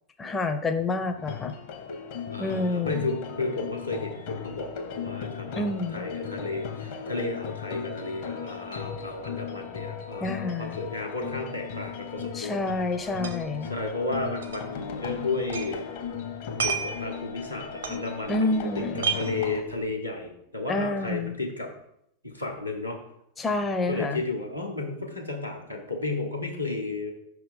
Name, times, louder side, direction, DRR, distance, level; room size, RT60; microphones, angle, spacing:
voice 1, 0.2-1.5 2.4-3.0 5.5-6.1 10.2-10.8 12.3-13.7 18.3-19.1 20.7-21.3 23.4-24.2, left 2 dB, 15° left, 7 dB, 0.5 m, -28 dB
sound 1, 1.2-19.6, left 7 dB, 50° left, 0.9 m, -37 dB
voice 2, 2.3-12.6 13.6-15.8 16.6-21.7 22.2-23.0 23.9-27.1, left 3 dB, 90° left, -1 dB, 1.2 m, -33 dB
sound 2, 12.6-12.7 12.9-13.6 13.9-14.0 14.4-15.8 16.0-18.6 18.9-19.9, right 6 dB, 70° right, 0.7 m, -32 dB
5.6 x 3.5 x 5.3 m, 0.76 s
figure-of-eight pair, 90°, 0 cm